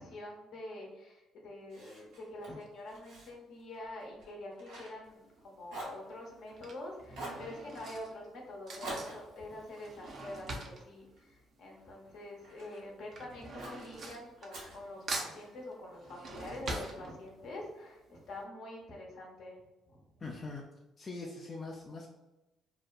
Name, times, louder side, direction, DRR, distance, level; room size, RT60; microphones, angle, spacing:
voice 1, 0.0-19.6 19.9-20.0, left 1 dB, 65° left, -1 dB, 0.7 m, -46 dB
Fire, 1.7-5.4 5.7-6.7 7.1-7.5 8.8-11.2 11.7-12.9 13.6-13.9 14.5-15.6, right 1 dB, 75° right, 1.0 m, -47 dB
Drawer open or close / Cutlery silverware, 5.1-5.5 6.3-12.2 12.4-14.8 15.1-17.6 18.0-18.1 18.3-18.4, right 2 dB, 55° right, 0.5 m, -43 dB
voice 2, 20.2-20.6 21.0-22.1, left 3 dB, 40° left, -1 dB, 0.4 m, -42 dB
2.7 x 2.1 x 2.4 m, 1.0 s
hypercardioid pair, 50°, 0 cm